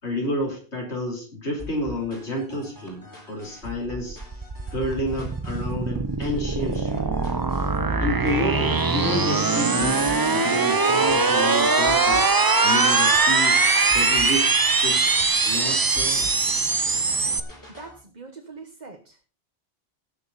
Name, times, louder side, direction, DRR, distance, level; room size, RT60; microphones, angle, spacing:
voice 1, 0.0-4.2 4.7-7.2 8.0-12.3 12.6-13.6 13.9-15.1 15.5-16.3, left 1 dB, 85° left, -1 dB, 3.7 m, -30 dB
sound 1, 1.6-18.0, left 2 dB, 15° left, 4.2 m, -43 dB
sound 2, 3.6-17.4, right 4 dB, 25° right, 0.5 m, -22 dB
voice 2, 17.8-19.1, right 4 dB, 40° right, 3 dB, 1.4 m, -42 dB
18.5 x 6.9 x 4.0 m, 0.36 s
omnidirectional pair, 1.1 m